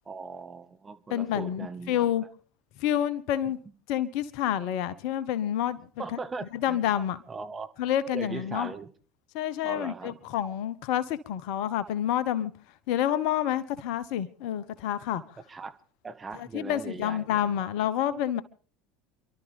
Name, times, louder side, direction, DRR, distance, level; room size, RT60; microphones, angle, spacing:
voice 1, 0.0-1.9 3.6-3.7 6.0-6.8 7.3-7.7 8.1-8.9 9.6-10.2 15.5-15.7 16.0-17.5, right 4 dB, 25° right, 1.5 m, -39 dB
voice 2, 1.1-2.2 2.8-3.6 3.9-5.9 6.6-7.2 7.8-8.7 9.3-12.5 12.9-15.2 16.3-18.4, left 11 dB, 60° left, 1.1 m, -28 dB
28.5 x 12.5 x 3.5 m
figure-of-eight pair, 70°, 0 cm